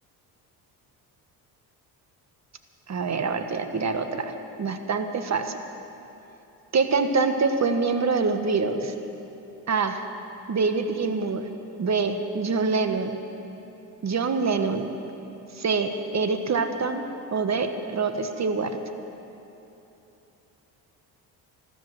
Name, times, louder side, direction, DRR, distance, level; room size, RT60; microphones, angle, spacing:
voice 1, 2.9-5.6 6.7-8.9 9.7-10.0 10.5-11.5 11.8-13.2 14.0-14.9 15.5-17.0 17.3-18.8, right 4 dB, 35° right, 8 dB, 1.4 m, -25 dB
13.5 x 13.0 x 7.7 m, 3.0 s
supercardioid pair, 65°, 46 cm